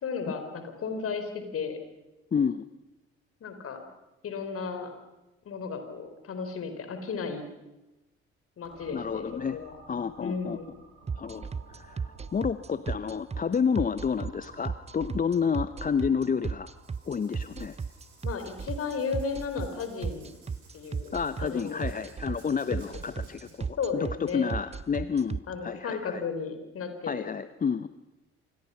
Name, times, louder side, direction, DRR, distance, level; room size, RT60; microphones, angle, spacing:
voice 1, 0.0-1.8 3.4-3.8 4.2-4.9 5.4-7.4 8.6-9.8 10.2-10.7 18.2-20.3 20.7-22.0 22.7-23.0 23.8-24.5 25.5-27.3, left 5 dB, 45° left, 7 dB, 4.7 m, -34 dB
voice 2, 2.3-2.6 8.9-9.6 9.9-10.6 11.2-11.4 11.7-12.0 12.3-16.7 17.1-17.8 21.1-26.2 27.1-27.9, left 6 dB, 25° left, 14 dB, 0.9 m, -30 dB
sound 1, 8.6-22.2, right 3 dB, 55° right, 7.7 m, -55 dB
sound 2, 11.1-25.4, right 5 dB, 20° right, 0.9 m, -34 dB
Writing, 16.8-23.5, right 4 dB, 75° right, 7.8 m, -58 dB
28.5 x 27.5 x 5.9 m, 1.0 s
figure-of-eight pair, 50°, 32 cm